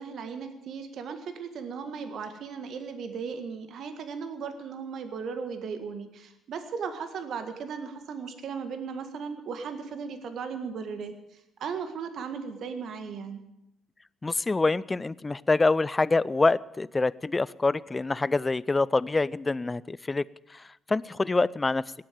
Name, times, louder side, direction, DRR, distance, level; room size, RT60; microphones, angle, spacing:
voice 1, 0.0-11.1 11.6-13.4, right 6 dB, 60° right, 8 dB, 1.8 m, -36 dB
voice 2, 14.2-20.2 20.5-20.6 20.9-21.8, left 3 dB, 25° left, 21 dB, 0.5 m, -25 dB
18.0 x 8.8 x 9.0 m, 0.84 s
hypercardioid pair, 50°, 0 cm